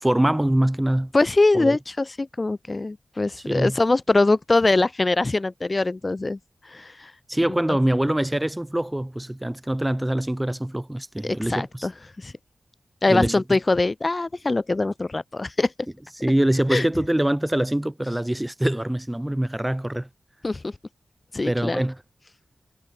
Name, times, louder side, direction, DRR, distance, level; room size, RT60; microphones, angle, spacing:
voice 1, 0.0-1.1 1.5-1.8 3.5-3.8 7.3-11.9 13.1-13.3 16.2-20.1 21.4-22.0, right 1 dB, 15° right, 2.4 m, -24 dB
voice 2, 1.1-6.4 6.6-7.1 7.7-7.8 11.2-11.9 12.2-12.3 13.0-15.7 16.7-16.9 20.4-20.7 21.3-21.8, left 2 dB, 40° left, 0.8 m, -22 dB
cardioid pair, 40°, 0 cm